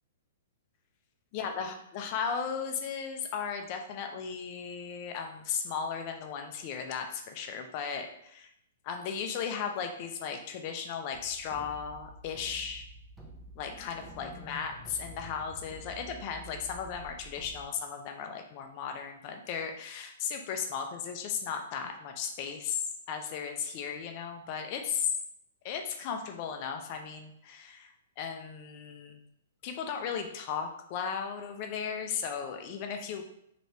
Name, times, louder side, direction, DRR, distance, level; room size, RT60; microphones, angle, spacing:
voice 1, 1.3-8.5 8.8-12.9 13.6-25.1 25.6-29.2 29.6-33.2, left 7 dB, 40° left, 4 dB, 0.5 m, -36 dB
sound 1, 11.1-17.6, right 1 dB, 5° right, 0.5 m, -49 dB
3.2 x 3.0 x 2.7 m, 0.75 s
hypercardioid pair, 150°, 0 cm